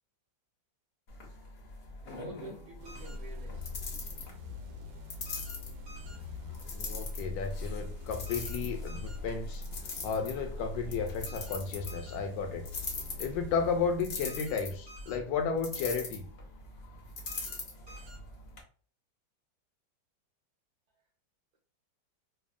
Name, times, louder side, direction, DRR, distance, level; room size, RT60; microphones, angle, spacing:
sound 1, 1.1-18.6, left 3 dB, 65° left, 0.6 m, -43 dB
voice 1, 2.1-3.8, right 3 dB, 70° right, -3 dB, 1.2 m, -48 dB
sound 2, 2.8-14.7, left 3 dB, 85° right, 1.3 m, -42 dB
sound 3, 2.9-3.2 5.3-5.6 5.9-6.2 8.3-8.6 8.9-9.2 11.3-11.6 11.9-12.2 14.3-14.6 14.9-15.2 17.3-17.6 17.9-18.2, right 1 dB, 50° right, 0.7 m, -51 dB
voice 2, 6.7-9.6 10.0-12.6 13.2-16.3, left 5 dB, 80° left, 5 dB, 1.3 m, -33 dB
3.4 x 2.0 x 2.4 m, 0.42 s
omnidirectional pair, 2.0 m